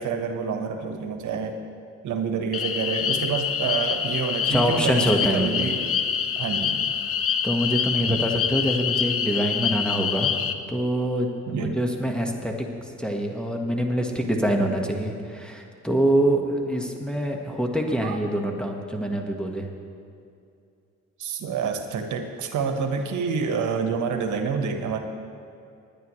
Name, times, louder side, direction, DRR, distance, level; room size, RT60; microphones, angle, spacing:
voice 1, 0.0-1.6 2.0-5.8 6.4-6.9 11.5-11.8 18.0-18.2 21.2-25.0, right 5 dB, 75° right, 5 dB, 1.3 m, -28 dB
sound 1, 2.5-10.5, left 7 dB, 50° left, 0.7 m, -26 dB
voice 2, 4.5-5.7 7.4-10.4 10.7-12.7 13.0-19.7, right 1 dB, 5° left, 2 dB, 1.4 m, -25 dB
20.0 x 10.5 x 3.2 m, 2.5 s
cardioid pair, 90°, 30 cm